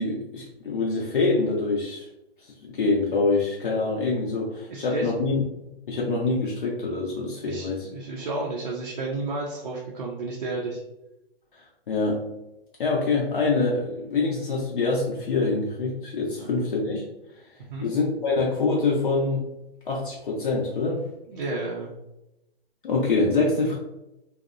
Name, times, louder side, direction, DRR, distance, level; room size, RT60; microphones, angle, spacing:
voice 1, 0.0-2.1 2.6-5.4 5.9-7.9 11.5-12.2 12.8-17.1 17.8-19.5 19.9-21.0 22.8-23.8, left 3 dB, 55° left, -2 dB, 0.5 m, -25 dB
voice 2, 4.7-5.1 7.5-10.8 16.4-16.5 17.7-17.9 21.3-21.9, right 2 dB, 45° right, -3 dB, 0.4 m, -32 dB
2.7 x 2.0 x 2.4 m, 0.91 s
hypercardioid pair, 165°, 31 cm